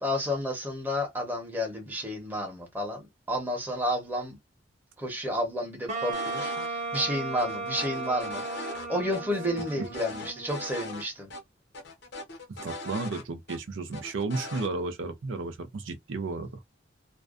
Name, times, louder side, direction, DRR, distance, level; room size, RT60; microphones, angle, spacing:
voice 1, 0.0-4.4 5.0-11.3, equal, 10° right, 0.8 m, -31 dB
Wind instrument woodwind instrument, 5.9-10.9, right 3 dB, 35° right, 0.9 m, -35 dB
sound 1, 6.1-6.7 6.9-7.1 7.4-8.9 9.1-9.2 9.6-11.0 11.3-11.4 11.7-13.6 13.9-14.7, left 2 dB, 55° left, 0.7 m, -40 dB
voice 2, 12.5-16.6, right 3 dB, 80° right, 0.5 m, -33 dB
2.5 x 2.2 x 2.3 m
head